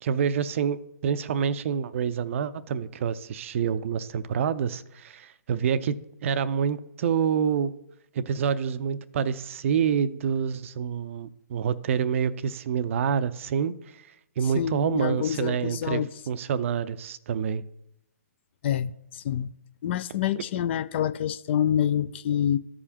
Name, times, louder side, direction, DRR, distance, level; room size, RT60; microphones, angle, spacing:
voice 1, 0.0-6.0 6.2-7.7 8.1-14.1 14.4-17.6, right 7 dB, 45° right, 0.5 m, -27 dB
voice 2, 14.4-16.1 18.6-19.5 19.8-22.6, left 10 dB, 40° left, 0.4 m, -27 dB
14.0 x 4.9 x 2.9 m
figure-of-eight pair, 130°, 9 cm